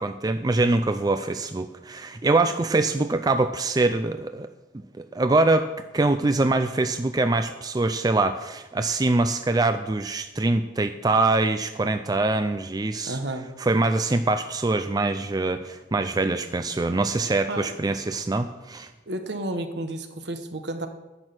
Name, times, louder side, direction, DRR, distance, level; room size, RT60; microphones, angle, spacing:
voice 1, 0.0-4.5 5.0-13.2 13.6-18.9, right 2 dB, 20° right, 8 dB, 0.4 m, -24 dB
voice 2, 13.1-13.5 17.5-17.7 19.1-20.9, right 1 dB, 65° right, 7 dB, 1.2 m, -31 dB
11.0 x 6.3 x 9.0 m, 1.1 s
head